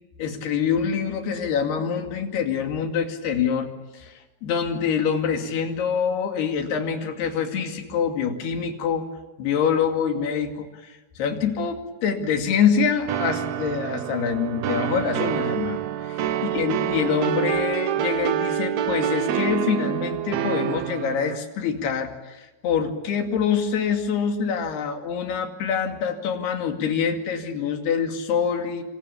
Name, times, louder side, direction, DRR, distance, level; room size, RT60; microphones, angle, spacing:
voice 1, 0.2-9.0 9.4-16.1 16.4-28.8, left 7 dB, 85° left, 4 dB, 4.5 m, -25 dB
sound 1, 13.1-21.4, right 10 dB, 70° right, 1.7 m, -27 dB
27.5 x 27.0 x 7.2 m, 1.1 s
omnidirectional pair, 4.6 m